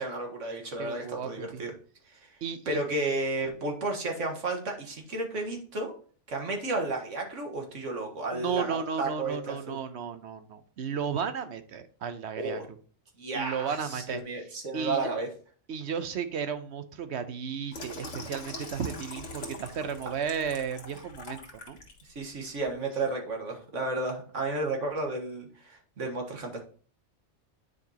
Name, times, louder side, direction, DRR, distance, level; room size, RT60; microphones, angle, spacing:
voice 1, 0.0-1.7 2.1-2.3 2.7-5.9 6.3-9.8 12.3-12.6 13.2-15.3 22.0-26.6, right 2 dB, 85° right, 2 dB, 1.9 m, -32 dB
voice 2, 0.8-1.6 2.4-2.8 8.3-12.6 13.3-14.5 14.7-15.1 15.7-21.8, right 6 dB, 70° right, 11 dB, 1.0 m, -34 dB
Water tap faucet / Sink (filling or washing), 17.7-22.0 22.5-22.7, left 2 dB, 80° left, 1.9 m, -42 dB
9.4 x 5.0 x 2.9 m, 0.43 s
omnidirectional pair, 1.2 m